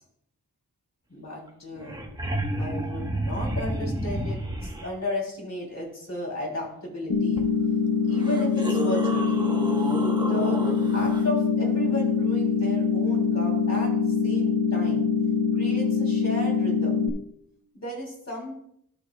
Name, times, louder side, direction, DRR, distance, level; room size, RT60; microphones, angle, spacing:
voice 1, 1.1-2.0 2.6-7.4 8.1-9.4 10.2-10.6 10.9-14.0 14.2-15.1 15.6-17.0 17.7-18.5, left 1 dB, 50° left, -2 dB, 3.1 m, -34 dB
sound 1, 1.5-1.6 1.7-4.9 7.4-7.5 8.1-11.2 13.7-13.8, right 1 dB, 10° right, 1.2 m, -31 dB
sound 2, 7.1-17.1, left 5 dB, 70° left, 0.9 m, -24 dB
13.5 x 6.3 x 2.3 m, 0.71 s
wide cardioid pair, 105°, 36 cm